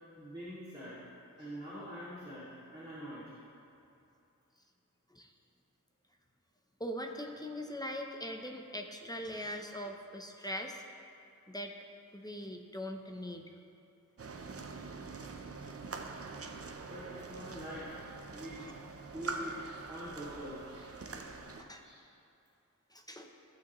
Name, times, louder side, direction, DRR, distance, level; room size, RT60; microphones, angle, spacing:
voice 1, 0.2-1.0 1.4-3.4 15.6-15.7 16.9-18.0 18.3-20.9 21.8-22.0, equal, 15° right, -13 dB, 2.3 m, -45 dB
voice 2, 6.8-10.8 11.5-11.7 12.1-13.4 18.6-18.7 21.6-21.8 22.9-23.3, equal, 10° left, 3 dB, 0.6 m, -41 dB
sound 1, 14.2-21.6, right 3 dB, 45° right, 0.6 m, -44 dB
14.5 x 6.2 x 3.0 m, 2.6 s
wide cardioid pair, 90°, 32 cm